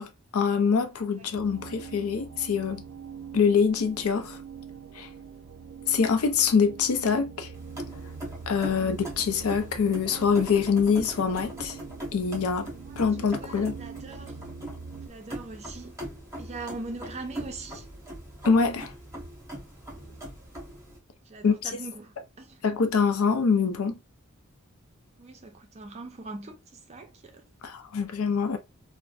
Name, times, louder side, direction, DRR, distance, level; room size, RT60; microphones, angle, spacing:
voice 1, 0.0-2.8 3.3-4.4 5.0-5.1 5.9-7.5 8.5-11.8 12.1-12.7 13.0-13.8 18.4-18.9 21.4-21.7 22.6-24.0 27.6-28.6, left 5 dB, 80° left, 0.5 m, -24 dB
sound 1, 1.3-15.1, right 6 dB, 90° right, 0.4 m, -43 dB
sound 2, 7.5-21.0, right 1 dB, 15° right, 0.8 m, -41 dB
voice 2, 8.6-8.9 12.9-14.4 15.0-16.0 16.4-17.9 20.0-20.3 21.3-22.6 25.2-27.4, right 3 dB, 30° right, 0.4 m, -42 dB
2.5 x 2.1 x 2.3 m
head